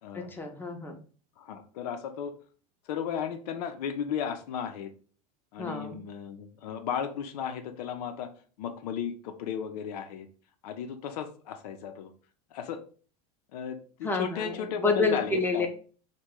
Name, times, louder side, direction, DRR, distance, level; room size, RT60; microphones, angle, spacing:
voice 1, 0.1-1.0 5.6-6.0 14.0-15.7, left 3 dB, 10° left, 3 dB, 0.6 m, -29 dB
voice 2, 1.4-2.3 2.9-4.9 5.5-8.3 8.6-10.3 10.6-12.1 12.5-12.8 13.5-15.7, left 8 dB, 85° left, 7 dB, 0.6 m, -35 dB
3.0 x 2.2 x 3.5 m, 0.40 s
supercardioid pair, 110°, 20 cm